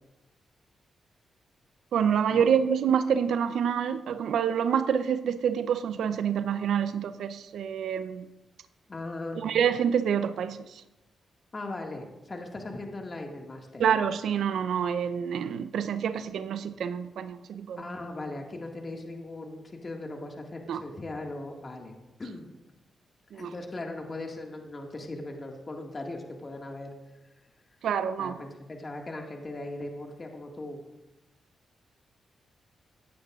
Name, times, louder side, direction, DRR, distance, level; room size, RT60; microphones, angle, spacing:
voice 1, 1.9-8.2 9.4-10.8 13.8-17.8 20.7-20.8 23.3-23.5 27.8-28.4, right 8 dB, 75° right, 12 dB, 0.6 m, -27 dB
voice 2, 8.9-9.4 11.5-13.8 17.8-22.5 23.3-26.9 28.2-30.8, left 2 dB, 40° left, 2 dB, 1.9 m, -39 dB
15.5 x 9.5 x 2.5 m, 1.0 s
supercardioid pair, 45°, 0 cm